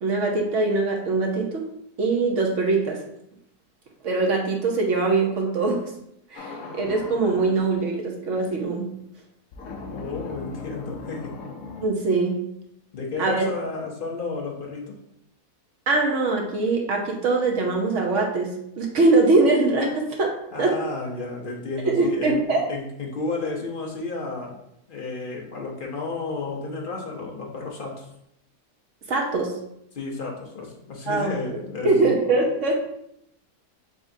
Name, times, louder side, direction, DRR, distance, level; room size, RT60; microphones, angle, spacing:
voice 1, 0.0-1.7 2.0-3.0 4.0-5.8 6.3-8.9 11.8-12.4 13.2-13.5 15.9-20.8 21.8-22.6 29.1-29.5 31.1-32.7, right 3 dB, 60° right, 1 dB, 1.0 m, -22 dB
sound 1, 6.4-7.8 9.5-11.9, left 4 dB, 70° left, 1.1 m, -38 dB
voice 2, 9.9-11.4 12.9-15.0 20.5-22.4 22.7-24.6 24.9-28.1 29.9-32.1, left 3 dB, 45° left, -1 dB, 0.7 m, -32 dB
5.0 x 3.6 x 2.7 m, 0.76 s
omnidirectional pair, 1.6 m